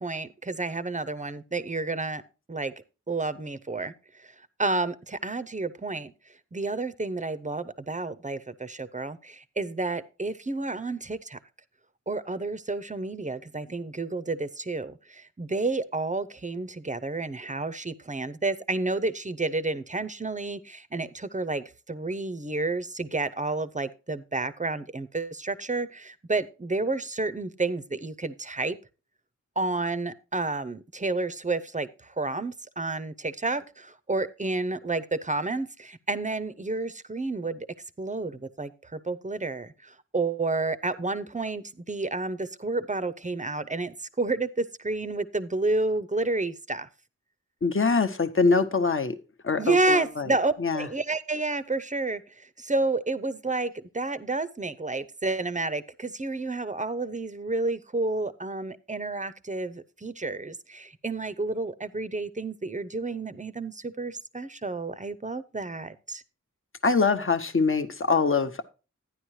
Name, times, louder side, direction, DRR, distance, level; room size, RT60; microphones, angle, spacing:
voice 1, 0.0-2.2 2.5-2.7 3.1-3.9 4.2-4.3 4.6-6.1 6.5-11.4 12.1-28.8 29.6-31.9 32.2-37.7 38.0-46.9 49.6-66.2, right 3 dB, 25° right, 0.6 m, -30 dB
voice 2, 47.6-49.2 49.4-50.3 50.6-50.9 66.8-68.6, left 4 dB, 45° left, 0.8 m, -24 dB
11.5 x 9.9 x 3.1 m
wide cardioid pair, 80°, 30 cm